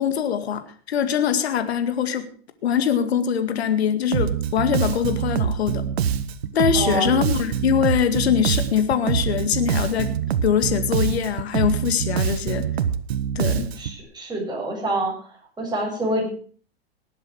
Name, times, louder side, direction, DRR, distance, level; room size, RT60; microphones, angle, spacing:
voice 1, 0.0-2.3 2.6-5.8 6.5-10.2 10.4-12.7 13.4-13.7, left 8 dB, 80° left, 9 dB, 2.0 m, -23 dB
Bass guitar, 4.1-14.0, right 8 dB, 80° right, 1.5 m, -25 dB
voice 2, 6.7-7.1 13.8-15.1 15.6-16.3, right 1 dB, 15° right, -1 dB, 7.6 m, -26 dB
19.0 x 8.2 x 6.2 m, 0.43 s
hypercardioid pair, 120°, 31 cm